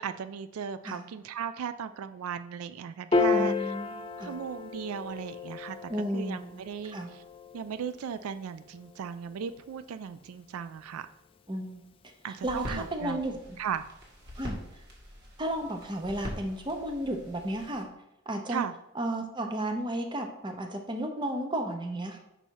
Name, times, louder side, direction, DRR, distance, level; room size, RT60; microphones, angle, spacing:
voice 1, 0.0-3.7 4.2-7.2 7.5-11.1 12.2-13.2 13.6-13.9 18.5-18.7, right 7 dB, 80° right, 12 dB, 0.3 m, -37 dB
Piano, 3.1-9.7, left 4 dB, 25° left, 0.4 m, -33 dB
voice 2, 3.3-4.4 5.9-6.6 6.9-7.1 11.5-11.8 12.4-13.6 14.4-14.6 15.4-17.9 18.3-18.6 19.0-22.2, right 1 dB, 20° right, 4 dB, 0.7 m, -33 dB
sound 1, 12.4-17.8, equal, 50° right, 1.7 m, -43 dB
5.5 x 5.4 x 4.6 m, 0.87 s
head